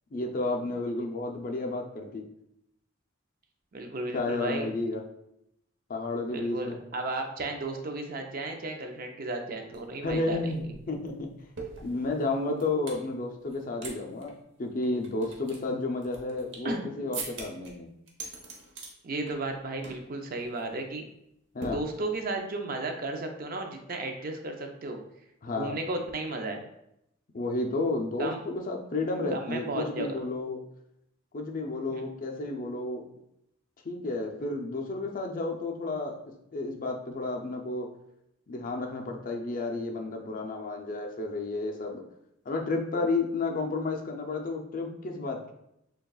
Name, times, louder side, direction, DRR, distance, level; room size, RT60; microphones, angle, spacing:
voice 1, 0.1-2.3 4.1-5.0 5.9-6.8 10.0-11.3 11.8-17.9 21.5-21.8 25.4-25.7 27.3-30.6 31.3-33.1 33.8-36.2 36.5-37.9 38.5-42.0 42.5-45.5, left 2 dB, 45° left, 2 dB, 0.5 m, -32 dB
voice 2, 3.7-4.7 6.3-10.5 16.6-17.4 19.0-21.1 21.7-25.0 25.5-26.6 28.2-28.4 29.3-30.2 31.9-32.1, right 2 dB, 50° right, 4 dB, 0.5 m, -34 dB
sound 1, 9.7-9.8 10.1-13.0 13.5-13.9 14.2-14.3 14.8-16.7 17.1-17.7 18.1-18.9 19.3-19.6 19.8-20.1 20.4-20.6 21.6-22.4, right 3 dB, 65° right, 0.8 m, -42 dB
6.4 x 2.3 x 2.3 m, 0.79 s
head